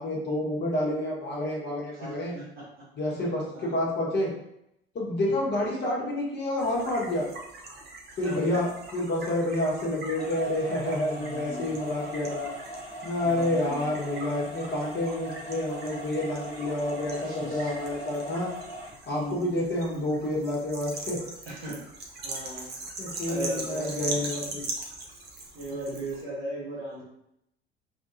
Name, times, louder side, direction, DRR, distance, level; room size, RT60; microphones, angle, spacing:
voice 1, 0.0-2.3 3.0-4.3 4.9-7.3 8.2-12.5 13.0-18.5 19.1-21.2 21.7-21.8 23.0-24.7, left 1 dB, 35° left, -4 dB, 1.2 m, -29 dB
voice 2, 2.0-2.7 3.5-3.7 5.2-5.5 8.2-8.6 11.2-11.7 13.2-13.9 17.2-17.7 19.1-19.6 19.9-20.0 21.5-21.8 22.2-22.8 23.3-24.3 25.5-27.0, right 1 dB, 80° right, -7 dB, 1.2 m, -37 dB
sound 1, 6.6-26.2, right 2 dB, 35° right, 0.7 m, -41 dB
sound 2, 10.2-18.9, right 1 dB, 80° left, 0.8 m, -41 dB
3.4 x 2.6 x 2.6 m, 0.80 s
figure-of-eight pair, 60°, 29 cm